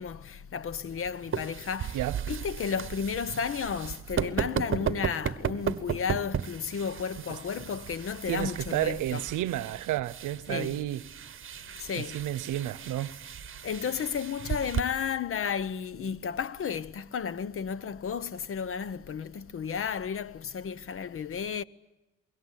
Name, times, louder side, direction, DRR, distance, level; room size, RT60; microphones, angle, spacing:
voice 1, 0.0-2.0 2.3-9.2 10.5-10.8 11.7-12.2 13.6-21.6, left 7 dB, 45° left, 0.8 m, -33 dB
sound 1, 0.9-14.8, right 8 dB, 45° right, 1.2 m, -35 dB
voice 2, 8.3-11.1 11.9-13.2, right 14 dB, 80° right, 0.8 m, -31 dB
24.5 x 22.5 x 9.9 m
cardioid pair, 90°, 30 cm